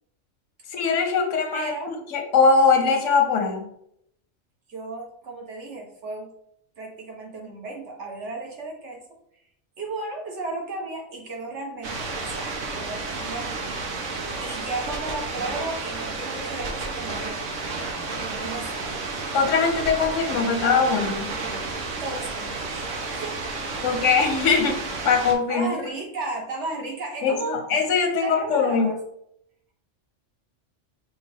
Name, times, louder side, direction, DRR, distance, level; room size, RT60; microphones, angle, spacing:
voice 1, 0.7-3.7 19.3-21.3 23.8-25.7 27.2-28.9, left 5 dB, 85° left, 4 dB, 1.1 m, -21 dB
voice 2, 1.5-1.9 4.7-6.3 6.8-9.0 9.8-13.7 14.0-17.5 18.4-19.0 22.0-24.1 25.5-27.6 28.2-29.0, right 2 dB, 70° right, 0 dB, 1.4 m, -34 dB
sound 1, 11.8-25.3, right 3 dB, 90° right, 1.2 m, -31 dB
5.9 x 2.3 x 3.5 m, 0.73 s
omnidirectional pair, 1.3 m